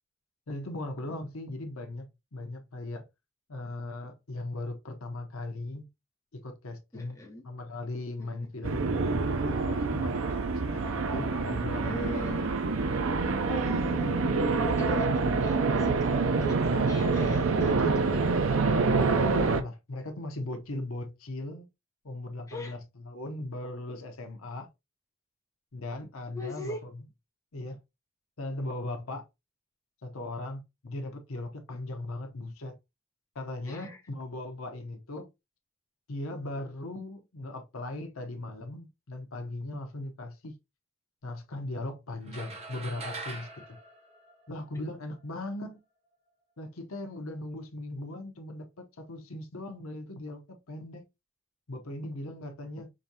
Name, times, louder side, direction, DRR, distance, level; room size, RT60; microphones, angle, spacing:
voice 1, 0.5-3.0 3.5-5.9 6.3-12.4 19.0-21.7 22.0-24.7 25.7-27.1 27.5-27.8 28.4-29.2 30.0-32.7 33.3-35.3 36.1-40.5 41.2-43.6 44.5-45.8 46.6-51.0 51.7-52.9, left 2 dB, 80° left, 0.9 m, -38 dB
voice 2, 6.9-7.4 8.2-8.5 11.8-12.5 13.5-16.1 16.4-18.2 22.5-22.8 26.3-26.8 33.7-34.0 44.7-44.8, left 1 dB, 15° left, 1.1 m, -39 dB
sound 1, 8.6-19.6, right 4 dB, 70° right, 0.6 m, -26 dB
sound 2, 42.3-44.9, right 3 dB, 30° right, 0.8 m, -42 dB
5.1 x 2.6 x 2.8 m
head